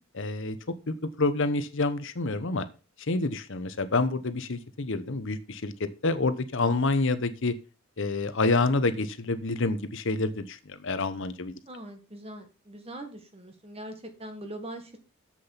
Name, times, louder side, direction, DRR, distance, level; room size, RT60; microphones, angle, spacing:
voice 1, 0.2-0.6 0.9-2.6 3.1-7.6 8.0-11.5, left 3 dB, 55° left, 12 dB, 0.8 m, -28 dB
voice 2, 11.7-15.0, right 1 dB, 25° right, 6 dB, 1.6 m, -42 dB
7.7 x 6.7 x 5.7 m, 0.34 s
head